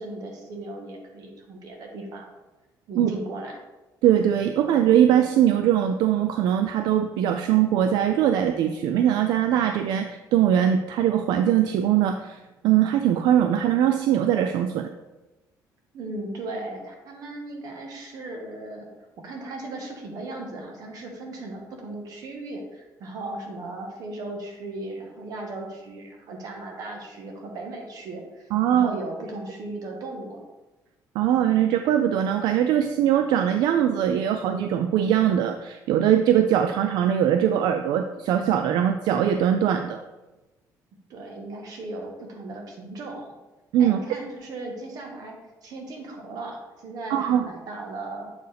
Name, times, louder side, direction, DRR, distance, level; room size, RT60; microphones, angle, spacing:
voice 1, 0.0-2.3 2.9-3.6 15.9-18.9 19.2-30.4 41.1-43.3 43.8-48.3, right 2 dB, 60° right, 2 dB, 1.4 m, -37 dB
voice 2, 4.0-14.9 28.5-28.9 31.2-40.0 43.7-44.0 47.1-47.5, right 10 dB, 85° right, 6 dB, 0.3 m, -21 dB
7.7 x 4.6 x 3.4 m, 1.1 s
cardioid pair, 140°, 7 cm